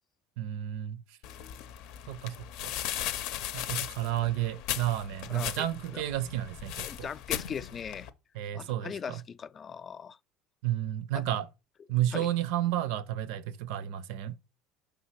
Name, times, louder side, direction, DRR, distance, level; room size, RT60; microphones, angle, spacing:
voice 1, 0.4-1.0 2.1-2.3 2.6-2.7 3.5-7.1 8.3-9.2 10.6-11.5 11.9-14.4, right 12 dB, 80° right, 0.6 m, -31 dB
sound 1, 1.2-8.1, left 11 dB, 70° left, 0.6 m, -37 dB
voice 2, 5.3-5.7 5.9-6.0 6.8-8.1 8.5-10.2 11.1-11.2 12.1-12.3, left 7 dB, 35° left, 0.3 m, -39 dB
5.6 x 3.4 x 5.7 m
supercardioid pair, 110°, 0 cm